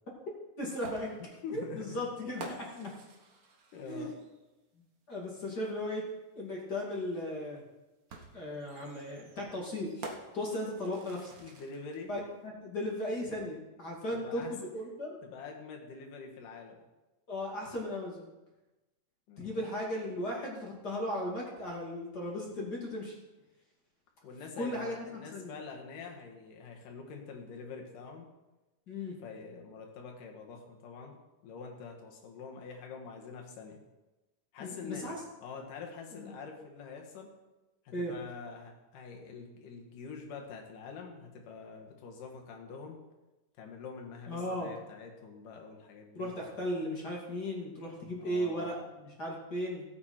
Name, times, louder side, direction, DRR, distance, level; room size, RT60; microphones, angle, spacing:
voice 1, 0.6-1.1 1.5-2.5 3.8-4.1 5.1-6.0 6.3-7.6 8.3-11.3 12.1-15.2 17.3-18.2 19.4-23.1 24.6-25.5 28.9-29.1 34.6-35.2 36.1-36.3 37.9-38.1 44.3-44.7 46.1-49.8, left 1 dB, 30° left, -3 dB, 2.6 m, -36 dB
sound 1, 0.8-4.5 6.0-6.1 8.1-12.0, right 3 dB, 80° right, 0.8 m, -49 dB
voice 2, 1.2-2.0 2.5-3.0 3.7-4.2 11.4-12.1 14.1-14.5 15.2-16.8 19.3-19.6 24.2-28.3 29.2-31.2 31.4-33.8 34.5-35.1 35.4-37.3 37.8-43.0 43.6-46.3 48.2-48.7, left 5 dB, 75° left, 1 dB, 3.2 m, -45 dB
16.0 x 8.4 x 4.4 m, 1.1 s
omnidirectional pair, 3.8 m